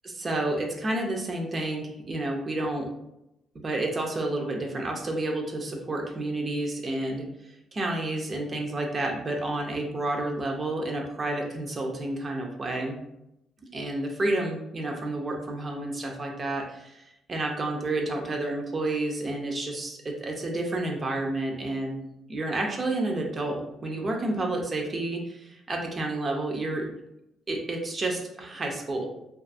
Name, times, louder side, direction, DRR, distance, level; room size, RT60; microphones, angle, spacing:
voice 1, 0.0-2.8 3.6-12.9 13.7-22.0 22.3-26.9 27.5-29.0, right 2 dB, 40° right, 1 dB, 0.5 m, -30 dB
2.5 x 2.3 x 2.5 m, 0.85 s
cardioid pair, 90°, 0 cm